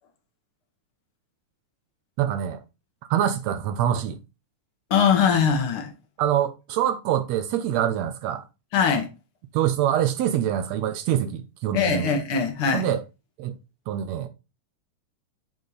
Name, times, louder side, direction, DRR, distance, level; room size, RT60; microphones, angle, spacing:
voice 1, 2.2-2.6 3.1-4.2 6.2-8.4 9.5-12.1 12.7-13.0 13.4-13.6 13.9-14.3, right 10 dB, 85° right, 1.5 m, -25 dB
voice 2, 4.9-5.9 8.7-9.1 11.7-12.9, left 6 dB, 60° left, 1.5 m, -21 dB
8.5 x 4.2 x 4.8 m
omnidirectional pair, 3.9 m